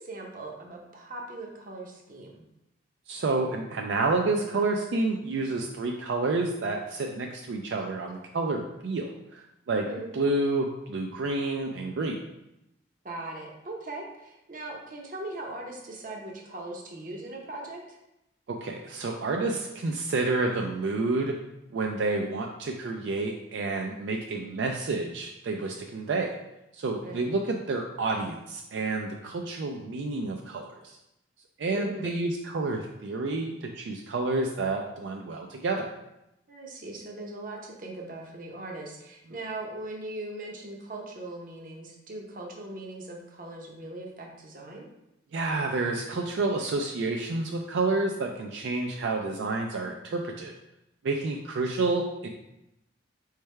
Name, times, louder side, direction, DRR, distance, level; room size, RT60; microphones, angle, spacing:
voice 1, 0.0-2.4 9.7-10.1 13.0-18.0 22.1-22.4 27.0-27.2 31.7-32.2 36.5-44.9, right 2 dB, 45° right, 0 dB, 0.7 m, -40 dB
voice 2, 3.1-9.9 10.1-12.2 18.5-21.4 21.7-26.3 26.7-31.0 31.6-35.9 45.3-50.5 51.0-52.3, right 3 dB, 75° right, 2 dB, 0.4 m, -29 dB
4.5 x 3.3 x 3.2 m, 0.88 s
head